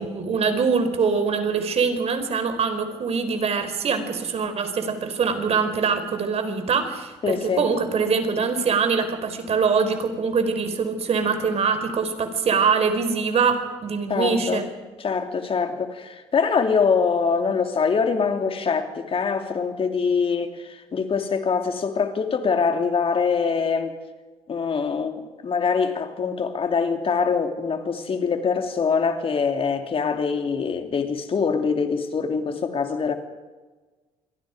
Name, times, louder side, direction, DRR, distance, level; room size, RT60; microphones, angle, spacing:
voice 1, 0.0-14.7, right 5 dB, 55° right, 4.0 m, -23 dB
voice 2, 7.2-7.7 14.1-14.6 15.0-24.0 24.5-33.1, left 5 dB, 45° left, 3.1 m, -24 dB
27.5 x 23.0 x 5.1 m
supercardioid pair, 65°, 13 cm